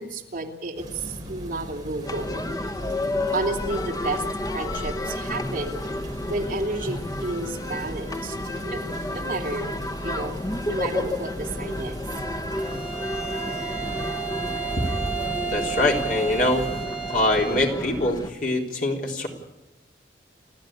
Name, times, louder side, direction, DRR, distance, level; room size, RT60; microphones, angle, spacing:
voice 1, 0.0-2.3 3.3-4.2 4.5-5.8 6.3-9.7 10.0-10.3 10.6-11.9, right 2 dB, 50° right, 0 dB, 3.1 m, -31 dB
sound 1, 0.8-16.9, equal, 25° right, 5.3 m, -40 dB
sound 2, 2.0-18.3, left 1 dB, 20° left, 1.1 m, -31 dB
Bowed string instrument, 12.5-17.8, right 7 dB, 5° right, 4.4 m, -32 dB
voice 2, 15.5-16.6 17.1-19.3, left 2 dB, 50° left, 0 dB, 3.7 m, -23 dB
30.0 x 12.5 x 8.9 m, 0.96 s
head